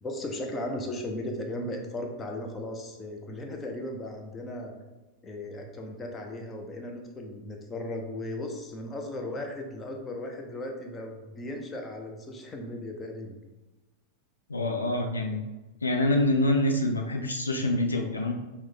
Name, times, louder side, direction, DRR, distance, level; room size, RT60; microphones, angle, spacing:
voice 1, 0.0-4.7 5.2-13.4, left 1 dB, 20° left, 3 dB, 0.7 m, -36 dB
voice 2, 14.5-15.4 15.8-18.3, left 1 dB, 75° left, 3 dB, 0.5 m, -26 dB
6.1 x 2.3 x 3.7 m, 1.1 s
figure-of-eight pair, 90°, 0 cm